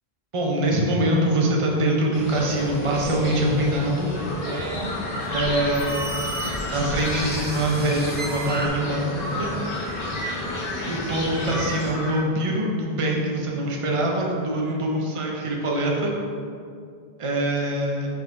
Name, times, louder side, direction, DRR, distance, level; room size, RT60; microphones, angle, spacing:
voice 1, 0.3-4.1 5.3-6.1 6.7-9.5 10.8-16.1 17.2-18.1, right 1 dB, 35° right, -1 dB, 0.8 m, -24 dB
sound 1, 2.1-11.9, left 1 dB, 70° left, 1.5 m, -32 dB
sound 2, 2.5-3.7 5.3-8.7, right 1 dB, 15° right, 0.5 m, -35 dB
sound 3, 4.1-12.2, left 1 dB, 40° left, 1.0 m, -34 dB
voice 2, 4.4-6.6 10.4-10.6 14.6-15.2, right 1 dB, 75° right, 0 dB, 1.0 m, -36 dB
5.3 x 3.9 x 5.2 m, 2.3 s
omnidirectional pair, 1.0 m